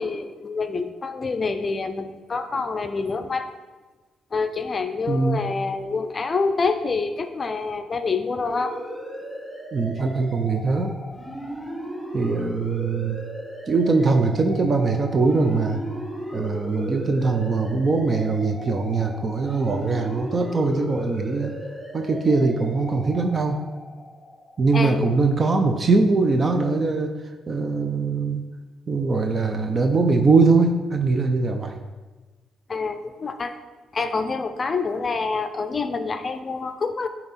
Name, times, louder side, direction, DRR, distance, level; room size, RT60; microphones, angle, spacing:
voice 1, 0.0-3.5 4.3-8.8 24.7-25.1 32.7-33.5 33.9-37.1, left 4 dB, 35° left, 9 dB, 0.5 m, -27 dB
voice 2, 5.1-5.4 9.7-11.0 12.1-13.2 13.7-15.8 16.3-21.5 21.9-23.6 24.6-27.1 27.5-28.4 28.9-31.7, right 3 dB, 40° right, 4 dB, 0.6 m, -21 dB
sound 1, 8.5-24.9, equal, ahead, 1.0 m, -36 dB
8.4 x 2.9 x 4.1 m, 1.3 s
cardioid pair, 90°, 0 cm